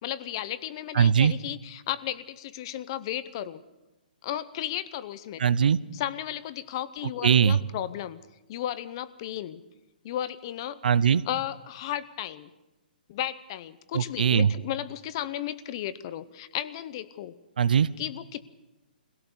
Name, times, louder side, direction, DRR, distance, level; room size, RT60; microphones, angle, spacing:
voice 1, 0.0-3.6 4.2-5.4 5.9-8.2 8.5-9.6 10.0-10.8 11.3-12.5 13.1-17.4 18.0-18.4, left 12 dB, 30° left, 16 dB, 0.7 m, -34 dB
voice 2, 0.9-1.3 5.4-5.8 7.2-7.6 10.8-11.2 13.9-14.5 17.6-17.9, right 7 dB, 65° right, 19 dB, 0.7 m, -20 dB
22.5 x 17.0 x 6.9 m, 1.0 s
hypercardioid pair, 165°, 5 cm